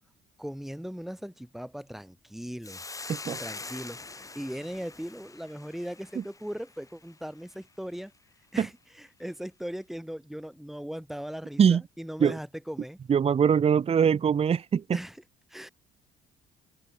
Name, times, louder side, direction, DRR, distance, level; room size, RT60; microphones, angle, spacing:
voice 1, 0.4-2.8 3.4-8.1 8.5-13.0 14.9-15.2 15.5-15.7, equal, ahead, 6.6 m, -38 dB
Hiss, 2.6-7.1, left 3 dB, 20° left, 6.3 m, -43 dB
voice 2, 13.1-14.8, right 7 dB, 35° right, 1.3 m, -22 dB
cardioid pair, 110°, 17 cm